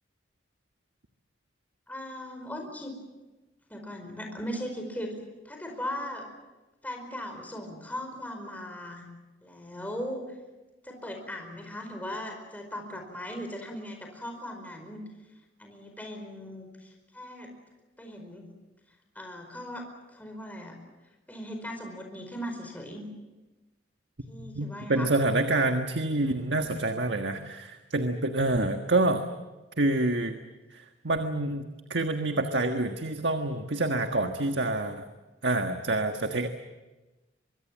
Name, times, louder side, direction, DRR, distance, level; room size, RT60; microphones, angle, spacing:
voice 1, 1.9-3.0 3.7-5.1 5.4-6.2 6.8-9.0 9.4-10.2 10.8-15.0 15.6-17.5 18.0-18.5 19.1-19.8 20.1-20.8 21.3-23.0 24.3-25.1, equal, 10° left, 3 dB, 4.7 m, -38 dB
voice 2, 24.4-29.2 29.8-30.4 30.7-35.0 35.4-36.5, right 2 dB, 75° right, 5 dB, 1.5 m, -27 dB
24.0 x 23.5 x 7.5 m, 1.1 s
head